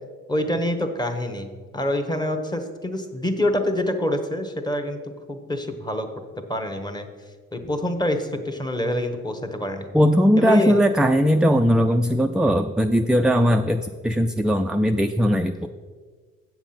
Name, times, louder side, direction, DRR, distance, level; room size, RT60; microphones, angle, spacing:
voice 1, 0.3-5.0 5.3-6.1 6.5-7.1 7.5-9.9 10.4-10.8, left 1 dB, 15° left, 6 dB, 1.1 m, -26 dB
voice 2, 9.9-15.7, equal, ahead, 5 dB, 0.3 m, -19 dB
7.9 x 7.1 x 5.8 m, 1.5 s
cardioid pair, 90°, 30 cm